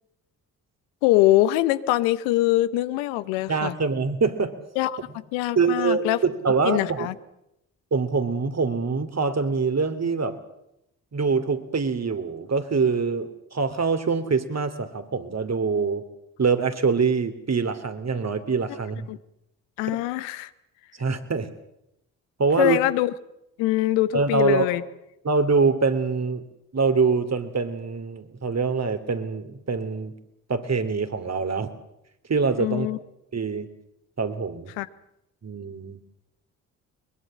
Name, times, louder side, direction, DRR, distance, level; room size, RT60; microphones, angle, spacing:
voice 1, 1.0-3.7 4.8-5.0 5.3-6.2 6.6-7.1 19.1-19.2 19.8-20.5 22.6-23.1 23.6-24.8 32.6-33.0 34.8-34.9, left 16 dB, 85° left, 15 dB, 0.9 m, -23 dB
voice 2, 3.5-4.5 5.6-7.1 7.9-10.4 11.1-16.0 16.4-19.1 19.9-20.0 21.0-21.5 22.4-22.8 24.1-24.7 25.2-26.4 26.7-30.1 30.5-31.7 32.3-32.9 33.3-33.7 34.2-34.7 35.4-36.0, right 4 dB, 40° right, 10 dB, 2.7 m, -24 dB
22.5 x 21.0 x 7.5 m, 0.83 s
hypercardioid pair, 45°, 41 cm